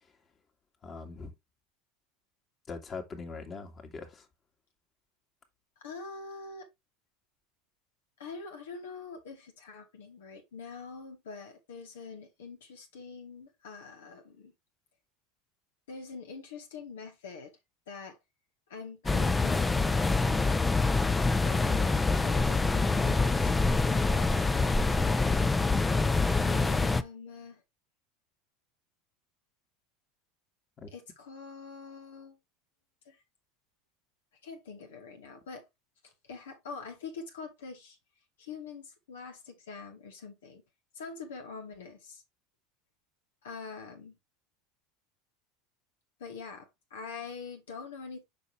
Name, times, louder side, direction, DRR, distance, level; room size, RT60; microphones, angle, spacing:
voice 1, 0.8-1.3 2.7-4.3 30.8-30.9, left 4 dB, 35° left, 2.3 m, -41 dB
voice 2, 5.8-6.7 8.2-14.5 15.9-17.5 17.9-18.2 18.7-20.6 21.4-24.5 26.4-27.6 30.9-32.4 33.0-33.2 34.4-35.7 36.0-38.0 38.4-40.6 40.9-42.2 43.4-44.2 46.2-48.2, left 5 dB, 80° left, 2.6 m, -45 dB
sound 1, 19.1-27.0, left 3 dB, 15° left, 0.6 m, -26 dB
6.8 x 5.4 x 3.3 m
hypercardioid pair, 90°, 0 cm